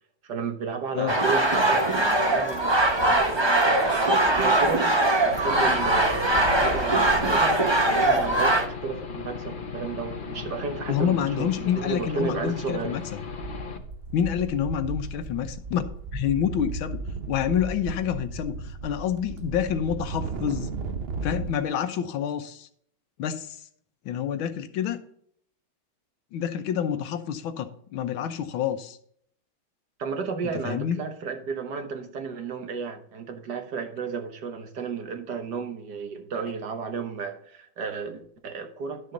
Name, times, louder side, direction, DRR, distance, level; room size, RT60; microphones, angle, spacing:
voice 1, 0.2-7.5 7.8-12.9 30.0-39.1, right 5 dB, 60° right, 6 dB, 1.6 m, -33 dB
sound 1, 1.1-8.7, right 2 dB, 20° right, 0.7 m, -21 dB
Aircraft / Engine, 5.3-13.8, left 5 dB, 45° left, 0.7 m, -37 dB
voice 2, 10.9-13.0 14.1-17.0 17.3-20.7 21.2-22.7 23.2-23.6 24.0-25.0 26.3-29.0 30.6-31.0, left 9 dB, 80° left, 10 dB, 1.6 m, -28 dB
sound 2, 12.6-12.8 13.1-21.5, right 4 dB, 90° right, 0.5 m, -35 dB
11.5 x 6.6 x 3.9 m, 0.64 s
omnidirectional pair, 2.2 m